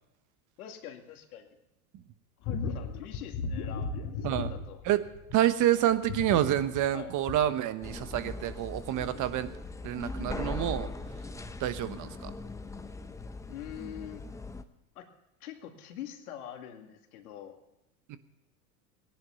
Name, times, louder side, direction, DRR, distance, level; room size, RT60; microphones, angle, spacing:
voice 1, 0.6-1.6 2.4-4.8 6.9-7.1 13.5-14.3 15.0-15.1 15.4-17.6, left 10 dB, 85° left, 4 dB, 2.3 m, -44 dB
sound 1, 2.4-5.5 5.9-7.6 8.1-8.2, left 4 dB, 45° left, 2.0 m, -36 dB
voice 2, 5.3-9.5 9.8-10.9 11.6-12.3 18.1-18.2, right 12 dB, 45° right, 12 dB, 1.2 m, -28 dB
sound 2, 7.8-14.6, left 2 dB, 5° left, 0.7 m, -40 dB
18.5 x 10.5 x 7.0 m, 0.90 s
supercardioid pair, 115°, 43 cm